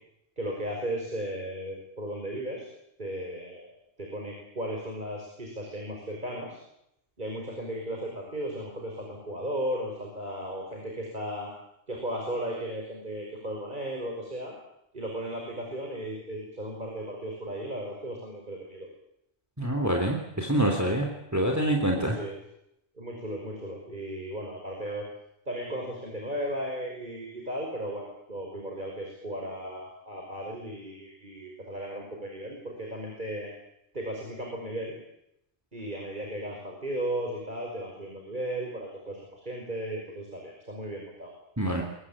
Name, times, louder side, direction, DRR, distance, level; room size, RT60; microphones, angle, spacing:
voice 1, 0.4-2.7 3.0-3.7 4.0-6.6 7.2-11.5 11.9-14.5 14.9-18.9 21.9-22.4 23.0-25.1 25.5-33.5 33.9-35.0 35.7-41.3, right 1 dB, 40° right, 0 dB, 5.8 m, -35 dB
voice 2, 19.6-22.2 41.6-41.8, right 1 dB, 15° right, 2 dB, 3.2 m, -26 dB
23.5 x 22.0 x 8.8 m, 0.81 s
omnidirectional pair, 1.2 m